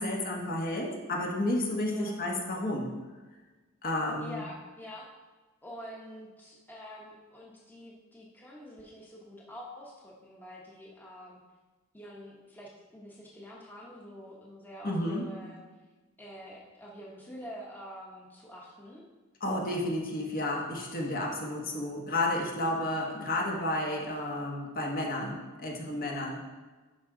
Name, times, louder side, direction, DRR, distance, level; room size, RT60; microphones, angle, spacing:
voice 1, 0.0-2.9 3.8-4.4 14.8-15.3 19.4-26.4, left 1 dB, 45° left, -1 dB, 1.3 m, -31 dB
voice 2, 1.8-2.1 4.2-5.1 5.6-11.4 11.9-15.6 16.2-19.1, equal, 10° left, -4 dB, 1.1 m, -46 dB
11.0 x 4.7 x 3.9 m, 1.2 s
head